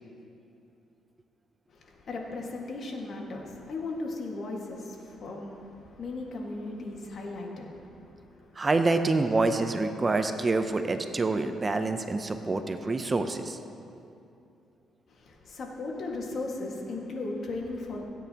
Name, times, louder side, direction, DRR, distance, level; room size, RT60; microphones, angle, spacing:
voice 1, 1.7-7.9 8.4-8.6 15.1-18.0, left 2 dB, 55° left, 0 dB, 1.8 m, -37 dB
voice 2, 8.6-13.6, right 3 dB, 30° right, 8 dB, 0.6 m, -27 dB
16.5 x 9.3 x 2.9 m, 2.7 s
cardioid pair, 95°, 0 cm